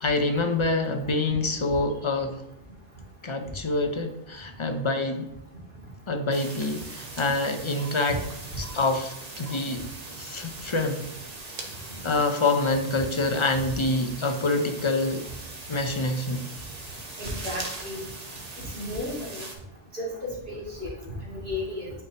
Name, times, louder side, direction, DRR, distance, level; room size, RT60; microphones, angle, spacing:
voice 1, 0.0-2.4 3.2-5.3 6.1-8.2 8.6-9.8 10.2-11.1 11.6-11.7 12.0-15.2 15.7-16.4, left 2 dB, 40° left, 6 dB, 0.5 m, -26 dB
sound 1, 6.3-19.6, right 3 dB, 40° right, 0.9 m, -40 dB
voice 2, 17.2-18.1 18.7-19.4 19.9-21.9, left 1 dB, 55° right, -5 dB, 2.4 m, -34 dB
8.9 x 4.5 x 2.9 m, 0.81 s
omnidirectional pair, 1.1 m